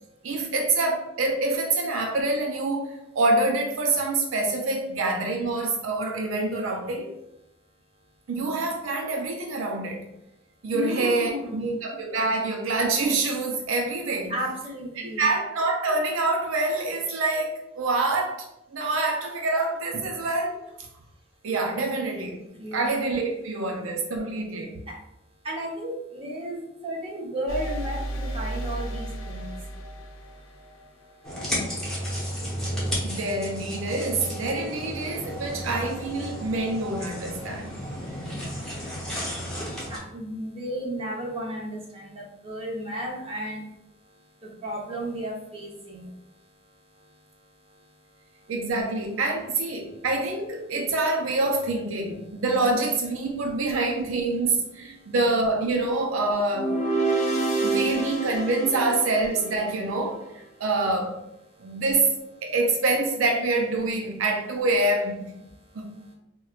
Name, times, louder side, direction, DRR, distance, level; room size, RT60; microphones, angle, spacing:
voice 1, 0.2-7.1 8.3-10.0 10.6-14.4 15.0-20.6 21.4-24.7 33.0-37.8 48.5-56.8 57.6-61.2 61.6-62.1 62.4-65.3 65.7-66.0, right 2 dB, 85° right, 2 dB, 0.5 m, -26 dB
voice 2, 10.7-11.8 14.3-15.3 22.6-22.9 24.9-25.0 25.4-29.5 39.9-43.6 44.4-46.1, equal, 30° right, -4 dB, 0.9 m, -33 dB
sound 1, 27.5-31.2, right 1 dB, 85° left, 0.5 m, -34 dB
sound 2, 31.2-40.0, equal, 5° left, 0.9 m, -33 dB
sound 3, 56.5-59.8, right 3 dB, 35° left, 0.7 m, -27 dB
4.3 x 2.2 x 2.4 m, 0.85 s
head